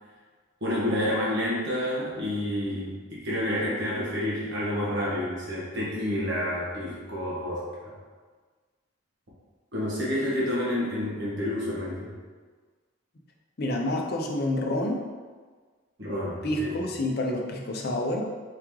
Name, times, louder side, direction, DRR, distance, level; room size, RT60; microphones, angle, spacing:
voice 1, 0.6-7.9 9.7-12.1 16.0-16.7, left 1 dB, 55° right, -8 dB, 1.2 m, -29 dB
voice 2, 13.6-15.0 16.4-18.2, left 1 dB, 50° left, 1 dB, 0.6 m, -28 dB
4.8 x 3.1 x 3.6 m, 1.4 s
head